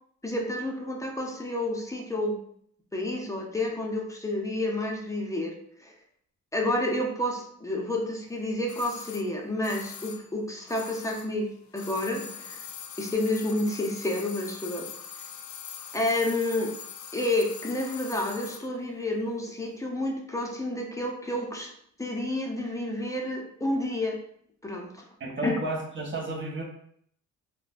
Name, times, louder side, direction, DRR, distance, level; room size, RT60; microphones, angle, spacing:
voice 1, 0.2-2.4 2.9-5.5 5.8-5.9 6.5-12.6 13.0-14.9 15.9-16.7 17.1-21.7 22.0-24.2 24.6-25.0 25.4-25.5, left 1 dB, 10° left, 0 dB, 0.6 m, -30 dB
sound 1, 8.7-11.4 11.7-18.7 19.0-19.1, left 8 dB, 70° left, 0.5 m, -42 dB
voice 2, 25.2-26.6, right 2 dB, 40° right, -1 dB, 1.0 m, -32 dB
3.6 x 2.2 x 2.5 m, 0.65 s
cardioid pair, 90°, 30 cm